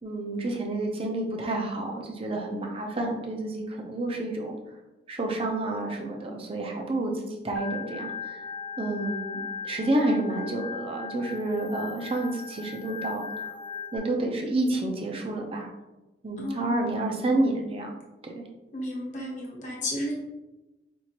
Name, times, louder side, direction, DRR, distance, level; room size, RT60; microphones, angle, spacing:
voice 1, 0.0-4.6 5.1-8.5 8.8-13.3 13.9-15.7 16.2-17.9 18.2-18.4, right 2 dB, 35° right, 1 dB, 0.6 m, -29 dB
Organ, 7.6-14.0, left 6 dB, 80° left, 0.9 m, -38 dB
voice 2, 16.4-16.9 18.7-20.2, equal, 45° left, -3 dB, 1.1 m, -33 dB
4.5 x 2.5 x 2.8 m, 1.1 s
head